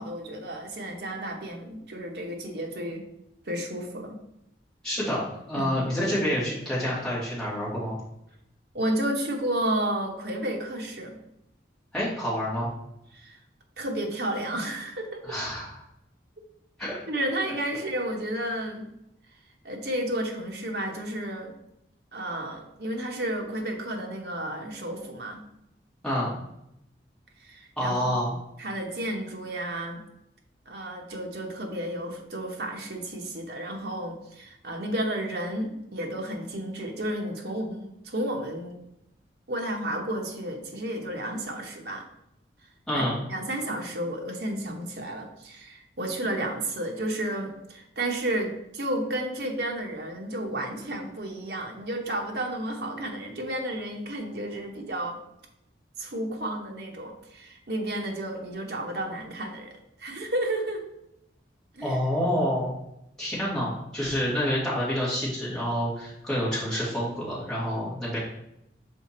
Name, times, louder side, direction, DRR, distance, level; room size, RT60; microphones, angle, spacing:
voice 1, 0.0-3.1 3.4-4.2 5.5-5.8 8.7-11.2 13.1-13.4 13.8-15.2 16.4-16.5 17.1-18.9 19.6-21.6 22.1-25.5 27.4-28.0 28.6-30.0 30.7-38.8 39.5-42.0 42.9-55.2 56.0-59.7 60.0-60.8 61.7-62.0, right 1 dB, 65° right, 2 dB, 1.1 m, -32 dB
voice 2, 4.8-8.0 11.9-12.7 15.3-15.8 16.8-17.0 26.0-26.3 27.8-28.3 42.9-43.2 61.8-62.7 63.2-68.2, equal, 5° left, -8 dB, 2.2 m, -28 dB
5.6 x 4.2 x 4.3 m, 0.83 s
head